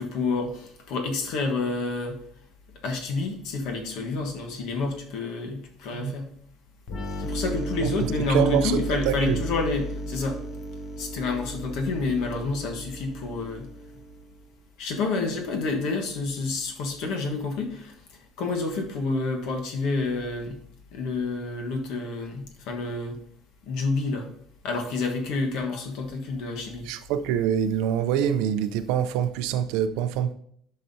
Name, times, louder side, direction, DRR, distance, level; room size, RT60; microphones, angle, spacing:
voice 1, 0.0-2.2 2.8-6.3 7.2-10.4 11.0-13.7 14.8-17.9 18.4-20.6 20.9-23.2 23.7-24.3 24.6-26.9, left 3 dB, 60° left, 1.3 m, -29 dB
sound 1, 6.9-14.5, right 1 dB, 40° left, 0.9 m, -34 dB
voice 2, 7.8-9.4 26.8-30.3, right 9 dB, 75° right, 0.5 m, -25 dB
11.0 x 5.7 x 2.7 m
cardioid pair, 180°, 0 cm